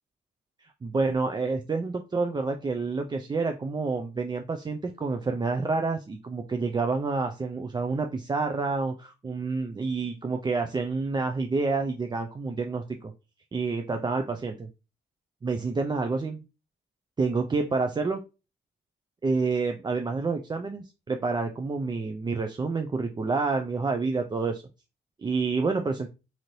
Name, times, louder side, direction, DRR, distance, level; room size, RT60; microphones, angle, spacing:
voice 1, 0.6-13.1 13.5-14.7 15.4-16.4 17.2-18.2 19.2-24.6 25.2-26.1, right 4 dB, 20° right, 4 dB, 0.3 m, -28 dB
2.7 x 2.6 x 3.0 m, 0.30 s
cardioid pair, 60°, 21 cm